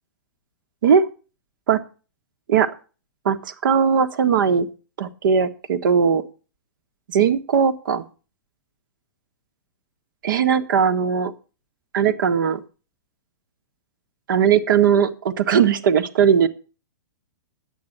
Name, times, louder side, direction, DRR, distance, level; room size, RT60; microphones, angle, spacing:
voice 1, 3.2-4.7 5.0-6.2 7.1-8.0 10.2-11.3 11.9-12.6 14.3-16.5, right 7 dB, 70° right, 9 dB, 1.7 m, -18 dB
10.5 x 8.7 x 6.7 m, 0.35 s
hypercardioid pair, 150°, 11 cm